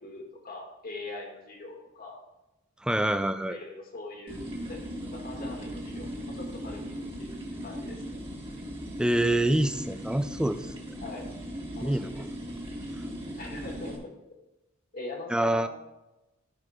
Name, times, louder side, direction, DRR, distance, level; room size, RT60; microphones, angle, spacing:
voice 1, 0.0-2.2 3.5-6.8 7.2-8.2 11.0-11.3 11.8-12.2 13.4-14.1 14.9-15.7, left 2 dB, 45° left, 0 dB, 1.9 m, -42 dB
voice 2, 2.8-3.6 9.0-10.6 11.8-12.1 15.3-15.7, right 1 dB, 5° right, 10 dB, 0.4 m, -26 dB
sound 1, 4.3-14.0, equal, 25° right, 1.6 m, -38 dB
13.5 x 5.0 x 3.6 m, 0.99 s
head